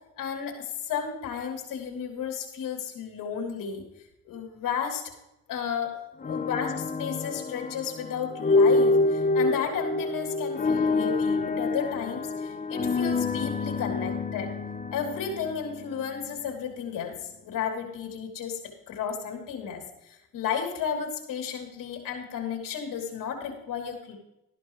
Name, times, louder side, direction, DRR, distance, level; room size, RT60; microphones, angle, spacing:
voice 1, 0.2-3.8 4.2-5.0 5.5-5.9 6.2-14.5 14.9-18.6 18.9-24.2, left 7 dB, 70° left, 2 dB, 3.2 m, -33 dB
sound 1, 6.2-16.3, left 3 dB, 25° left, 0.9 m, -27 dB
13.0 x 11.5 x 3.2 m, 0.87 s
cardioid pair, 80°, 33 cm